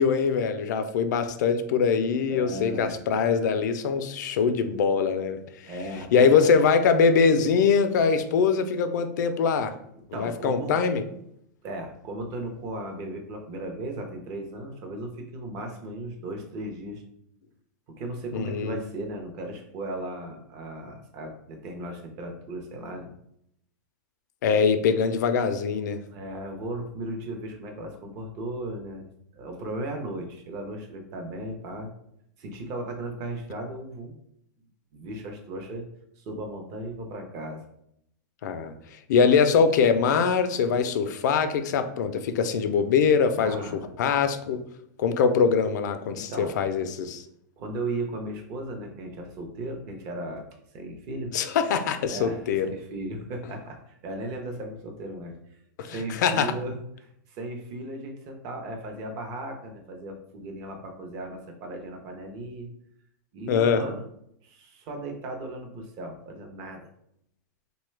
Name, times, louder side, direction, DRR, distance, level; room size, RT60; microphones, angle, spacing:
voice 1, 0.0-5.7 6.1-9.7 10.1-11.0 18.3-18.7 24.4-26.0 38.4-44.6 45.0-47.2 51.3-52.7 55.8-56.5 63.5-63.8, left 6 dB, 70° left, 9 dB, 0.4 m, -23 dB
voice 2, 2.3-2.9 5.7-6.5 10.1-10.8 11.6-17.0 17.9-23.1 26.1-29.0 29.3-31.9 32.4-34.2 34.9-35.9 36.2-37.6 43.4-43.9 46.1-46.6 47.6-50.5 50.7-51.3 52.1-55.3 55.8-56.7 57.0-62.7 63.3-64.0 64.4-66.9, right 1 dB, 35° right, 3 dB, 0.6 m, -36 dB
3.0 x 2.2 x 3.2 m, 0.75 s
supercardioid pair, 155°, 10 cm